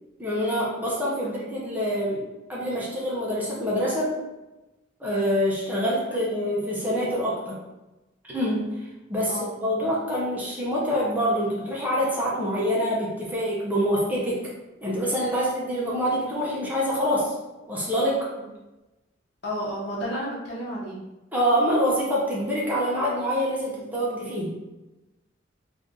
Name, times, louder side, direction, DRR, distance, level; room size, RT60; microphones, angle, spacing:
voice 1, 0.2-4.2 5.0-7.6 8.2-8.8 9.1-14.5 14.8-17.3 17.7-18.3 21.3-24.5, equal, 10° right, -6 dB, 0.7 m, -26 dB
voice 2, 19.4-21.0, equal, 60° left, -5 dB, 1.0 m, -32 dB
2.7 x 2.5 x 3.6 m, 1.0 s
head